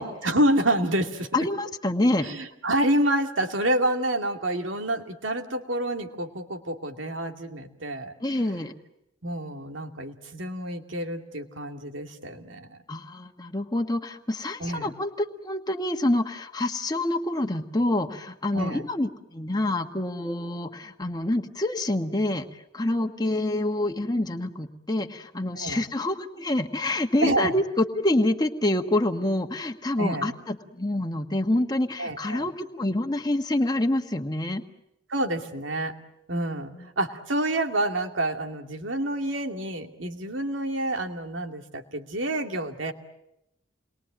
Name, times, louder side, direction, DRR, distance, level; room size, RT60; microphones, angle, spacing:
voice 1, 0.0-1.3 2.2-8.1 9.2-12.8 14.6-14.9 18.5-18.9 25.6-25.8 27.2-27.5 30.0-30.3 32.0-32.5 35.1-35.9 36.3-42.9, right 1 dB, 80° right, 4 dB, 2.5 m, -28 dB
voice 2, 1.3-2.3 8.2-8.7 12.9-22.5 22.7-34.6 36.8-36.9, left 1 dB, 20° left, 4 dB, 1.5 m, -27 dB
29.0 x 22.5 x 9.0 m, 0.86 s
head